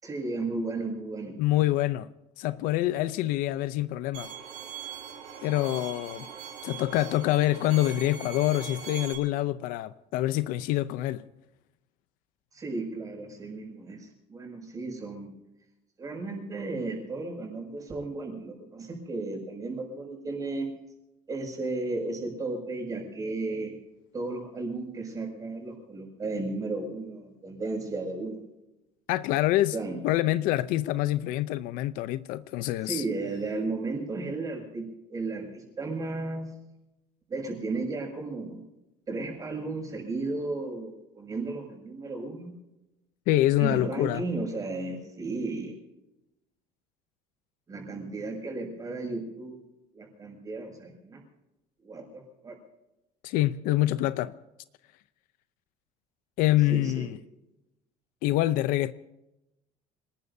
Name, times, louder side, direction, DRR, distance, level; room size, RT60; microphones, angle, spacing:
voice 1, 0.0-1.4 12.5-15.3 16.0-20.7 21.3-23.7 24.1-28.4 29.7-30.0 32.8-36.5 37.3-38.6 39.1-42.5 43.6-45.8 47.7-49.6 49.9-51.2 51.8-52.6 56.7-57.1, right 3 dB, 20° right, 6.3 m, -34 dB
voice 2, 1.4-2.1 2.4-4.3 5.4-6.3 6.6-11.2 29.1-29.8 30.0-33.0 43.3-44.2 53.2-54.3 56.4-57.2 58.2-58.9, left 15 dB, 65° left, 0.6 m, -26 dB
Bowed string instrument, 4.1-9.1, right 7 dB, 70° right, 5.3 m, -41 dB
27.5 x 19.5 x 2.7 m
cardioid pair, 155°, 15 cm